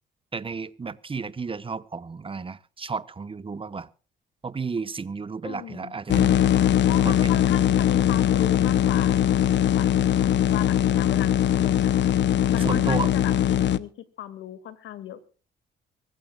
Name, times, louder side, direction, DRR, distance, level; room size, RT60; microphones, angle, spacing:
voice 1, 0.3-3.9 4.4-6.5 7.0-7.6 12.6-13.1, right 5 dB, 25° right, 1.1 m, -33 dB
voice 2, 5.4-6.0 6.8-11.9 12.5-13.9 14.2-15.2, left 11 dB, 85° left, 2.2 m, -37 dB
sound 1, 6.1-13.8, left 10 dB, 65° left, 0.9 m, -21 dB
24.5 x 15.0 x 2.4 m
cardioid pair, 90°, 20 cm